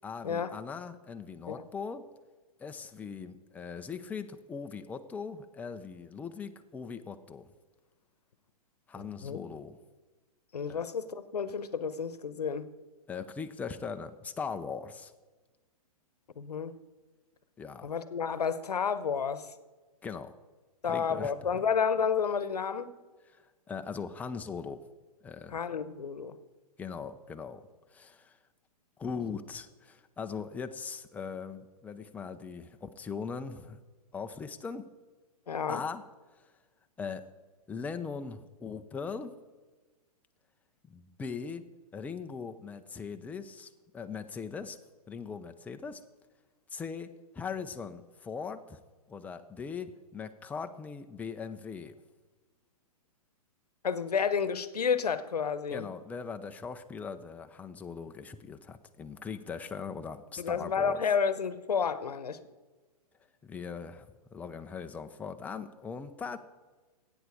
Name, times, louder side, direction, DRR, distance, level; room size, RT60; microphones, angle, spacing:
voice 1, 0.0-2.0 2.6-7.5 8.9-9.8 10.7-10.9 13.1-15.1 17.6-17.9 20.0-20.3 20.8-21.7 23.3-23.4 23.7-24.8 25.2-25.6 26.8-27.6 27.9-28.4 29.0-33.8 34.1-34.9 35.7-36.0 37.0-37.2 37.7-39.4 40.9-41.6 41.9-44.8 45.1-46.0 46.7-47.1 47.3-48.8 49.1-51.9 55.7-61.0 63.4-66.4, left 5 dB, 10° left, 8 dB, 0.5 m, -40 dB
voice 2, 10.5-12.7 16.4-16.7 17.8-19.5 20.8-22.9 25.5-26.4 35.5-35.8 53.8-55.9 60.4-62.4, left 6 dB, 85° left, 14 dB, 0.9 m, -30 dB
13.5 x 9.0 x 4.8 m, 1.3 s
hypercardioid pair, 130°, 20 cm